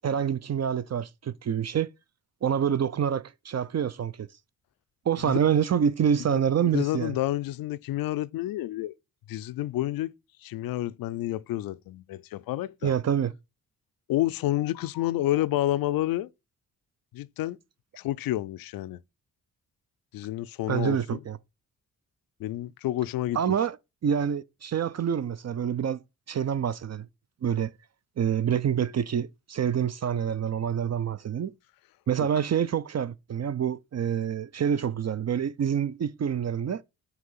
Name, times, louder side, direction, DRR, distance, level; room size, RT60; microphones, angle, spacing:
voice 1, 0.0-1.9 2.4-4.3 5.1-7.1 12.8-13.3 20.7-21.4 23.3-23.8 24.0-26.0 26.3-27.1 27.4-27.7 28.2-31.5 32.1-36.8, right 8 dB, 50° right, 0.6 m, -27 dB
voice 2, 6.7-8.9 9.3-10.1 10.4-12.9 14.1-16.3 17.1-17.6 18.0-19.0 20.1-21.2 22.4-23.4, left 14 dB, 85° left, 0.5 m, -29 dB
5.9 x 2.9 x 5.6 m
supercardioid pair, 50°, 34 cm